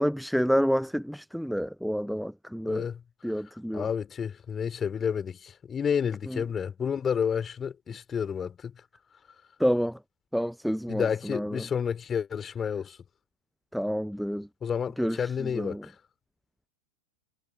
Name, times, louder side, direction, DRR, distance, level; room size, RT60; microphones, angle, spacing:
voice 1, 0.0-2.8 3.2-3.9 6.3-6.4 9.6-10.0 10.3-11.6 13.7-14.5 15.0-15.8, equal, ahead, 0.9 m, -28 dB
voice 2, 2.6-3.0 3.3-3.4 3.7-8.7 10.9-13.0 14.6-15.9, left 7 dB, 20° left, 3.7 m, -30 dB
figure-of-eight pair, 90°, 0 cm